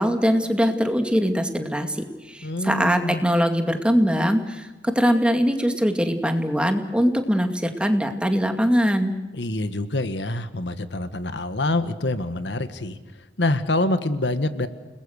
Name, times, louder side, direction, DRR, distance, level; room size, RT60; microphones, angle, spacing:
voice 1, 0.0-9.1, equal, 5° right, 5 dB, 2.2 m, -22 dB
voice 2, 2.4-3.2 9.3-13.0 13.4-14.7, left 2 dB, 75° left, 10 dB, 1.6 m, -26 dB
29.5 x 21.0 x 6.6 m, 1.1 s
head